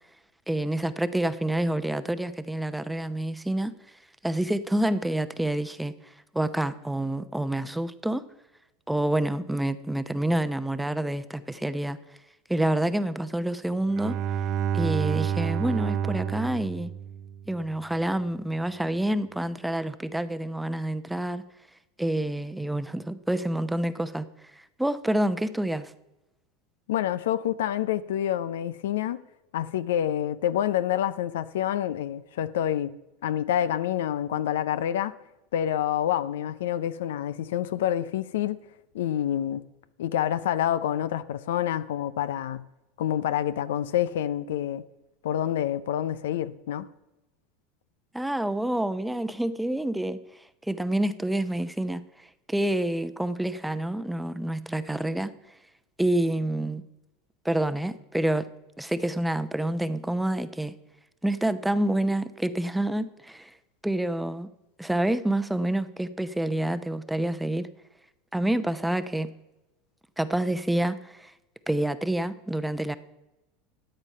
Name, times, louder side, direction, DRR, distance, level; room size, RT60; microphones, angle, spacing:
voice 1, 0.5-3.8 4.2-8.2 8.9-12.0 12.5-14.2 14.7-16.9 17.5-21.4 22.0-24.3 24.5-25.9 48.1-55.3 56.0-56.8 57.4-58.5 58.8-60.7 61.2-63.5 63.8-64.5 64.8-67.7 68.3-69.3 70.2-71.3 71.7-73.0, right 1 dB, 5° right, 0.7 m, -28 dB
Bowed string instrument, 13.8-17.6, right 8 dB, 50° right, 0.6 m, -29 dB
voice 2, 26.9-29.2 29.5-32.9 33.2-35.1 35.5-38.6 38.9-39.6 40.0-42.6 43.0-44.8 45.2-46.9, left 11 dB, 80° left, 0.5 m, -27 dB
13.0 x 8.8 x 5.5 m
hypercardioid pair, 95°, 0 cm